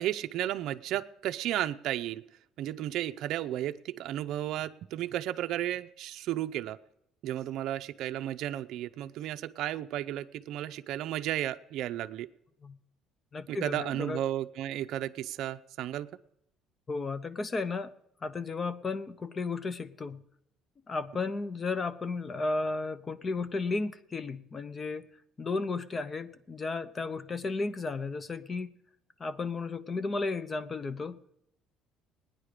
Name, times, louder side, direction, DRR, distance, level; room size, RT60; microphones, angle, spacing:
voice 1, 0.0-2.2 2.6-6.8 7.2-12.3 13.5-16.1, right 12 dB, 60° right, 9 dB, 0.6 m, -33 dB
voice 2, 13.3-14.2 16.9-17.9 18.2-20.2 20.9-25.1 25.4-28.7 29.2-31.2, left 3 dB, 25° left, 15 dB, 0.6 m, -34 dB
20.0 x 9.7 x 5.0 m, 0.79 s
cardioid pair, 145°, 0 cm